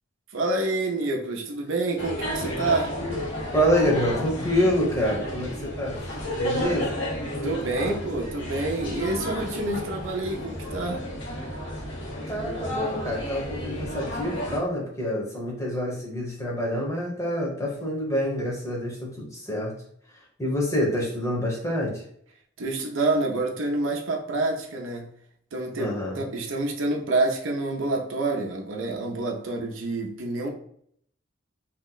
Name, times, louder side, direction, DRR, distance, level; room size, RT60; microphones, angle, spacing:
voice 1, 0.3-2.9 7.4-11.0 22.6-25.1 25.5-30.5, right 2 dB, 80° right, 0.6 m, -27 dB
sound 1, 2.0-14.6, equal, 65° left, 0.9 m, -32 dB
voice 2, 3.5-6.0 6.4-7.0 12.3-19.7 20.4-22.0 25.8-26.2, equal, 15° left, 0.8 m, -27 dB
2.8 x 2.1 x 3.8 m
head